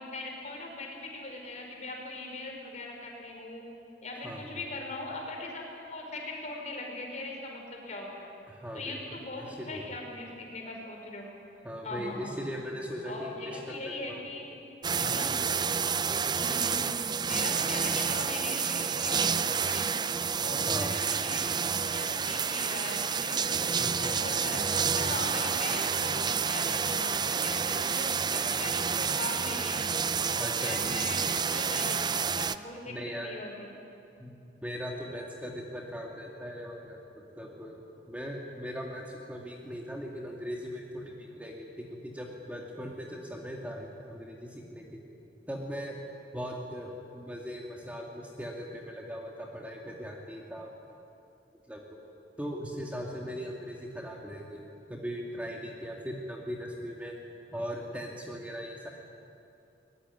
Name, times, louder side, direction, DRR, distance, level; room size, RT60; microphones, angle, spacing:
voice 1, 0.0-3.6 4.0-8.3 8.7-11.2 11.8-12.4 13.0-14.6 15.0-15.3 16.4-19.9 20.4-29.8 30.3-31.2 31.5-33.7, left 2 dB, 40° left, 1 dB, 5.1 m, -40 dB
voice 2, 8.5-9.0 9.4-9.9 11.6-14.2 15.0-15.2 20.7-20.9 23.8-24.2 25.0-25.2 30.4-31.0 32.9-33.3 34.2-34.4 34.6-45.0 45.5-46.0 46.3-50.8 51.7-52.0 52.4-57.1 57.5-58.9, equal, 10° right, -1 dB, 2.3 m, -39 dB
sound 1, 14.8-32.6, right 6 dB, 25° right, 0.5 m, -29 dB
22.5 x 20.5 x 9.9 m, 2.7 s
head